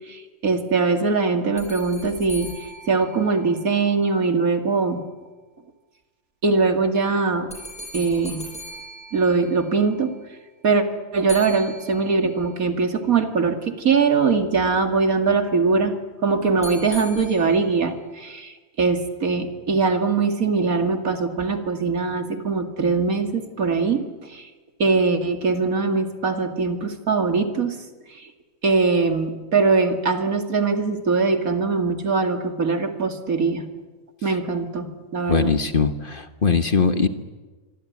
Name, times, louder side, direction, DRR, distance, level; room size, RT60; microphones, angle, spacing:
voice 1, 0.0-2.5 2.9-5.0 6.4-7.5 7.9-8.4 9.1-10.2 10.6-10.8 11.1-15.9 16.2-24.5 24.8-27.8 28.1-28.3 28.6-33.6 34.2-35.5, right 4 dB, 75° right, 6 dB, 2.6 m, -22 dB
sound 1, 1.6-4.0 7.5-10.0 11.3-12.5 16.6-17.8, equal, 5° left, 7.5 m, -40 dB
voice 2, 35.3-37.1, left 5 dB, 40° left, 9 dB, 1.4 m, -21 dB
24.5 x 24.5 x 9.5 m, 1.3 s
omnidirectional pair, 1.5 m